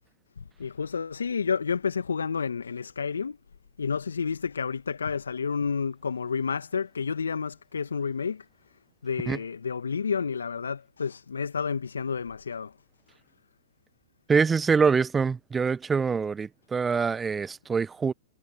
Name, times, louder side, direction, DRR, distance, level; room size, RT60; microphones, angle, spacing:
voice 1, 0.4-3.4 3.8-8.4 9.0-12.7, left 6 dB, 80° left, 1.7 m, -30 dB
voice 2, 14.3-18.1, right 5 dB, 15° right, 1.1 m, -24 dB
figure-of-eight pair, 105°, 0 cm